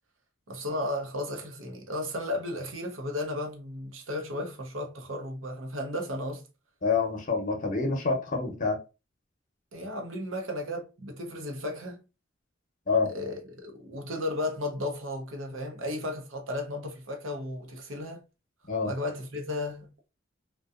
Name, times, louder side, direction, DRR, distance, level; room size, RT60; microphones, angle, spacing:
voice 1, 0.5-6.4 9.7-12.0 13.1-18.2 18.8-20.1, left 1 dB, 90° right, 0.7 m, -34 dB
voice 2, 6.8-8.8 12.9-13.1 18.7-18.9, left 4 dB, 40° left, 0.7 m, -27 dB
2.6 x 2.3 x 2.4 m
head